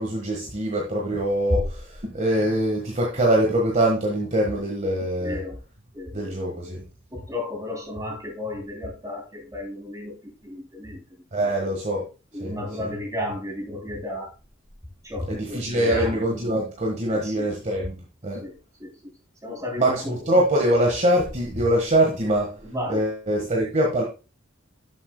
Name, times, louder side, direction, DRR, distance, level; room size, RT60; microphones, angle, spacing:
voice 1, 0.0-5.4 6.1-6.8 11.3-12.1 12.4-12.5 12.8-12.9 15.3-18.4 19.8-22.6 22.9-24.0, right 1 dB, 35° right, -1 dB, 1.5 m, -23 dB
voice 2, 5.2-5.6 5.9-6.7 7.1-11.0 11.4-11.5 12.3-14.3 15.0-16.2 17.1-17.5 18.4-18.5 18.8-19.1 19.4-20.2 22.6-23.0, left 1 dB, 15° right, 0 dB, 3.0 m, -33 dB
11.5 x 7.2 x 2.2 m, 0.31 s
head